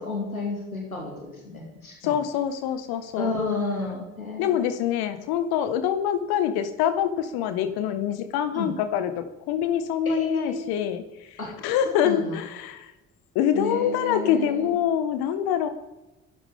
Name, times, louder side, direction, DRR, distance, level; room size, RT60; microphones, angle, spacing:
voice 1, 0.0-2.2 3.2-4.6 8.5-8.7 10.1-10.6 11.4-11.6 11.8-12.4 13.5-14.7, left 3 dB, 90° left, 0 dB, 2.5 m, -31 dB
voice 2, 2.0-3.3 4.4-11.0 11.6-12.9 13.4-15.7, left 9 dB, 65° left, 10 dB, 1.7 m, -25 dB
25.0 x 13.5 x 3.8 m, 1.0 s
figure-of-eight pair, 45°, 41 cm